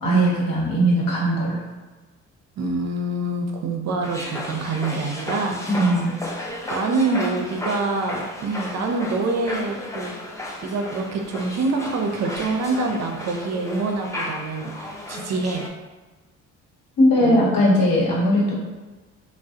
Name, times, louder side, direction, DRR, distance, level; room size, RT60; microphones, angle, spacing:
voice 1, 0.0-1.6 5.7-6.2 17.0-18.5, equal, 65° left, -5 dB, 1.0 m, -19 dB
voice 2, 2.6-5.6 6.7-10.1 10.6-14.7 15.1-15.6 17.2-17.5, right 3 dB, 45° right, 2 dB, 0.5 m, -25 dB
sound 1, 4.0-15.7, left 1 dB, 10° left, 0.4 m, -34 dB
2.3 x 2.0 x 2.7 m, 1.3 s
hypercardioid pair, 55°, 37 cm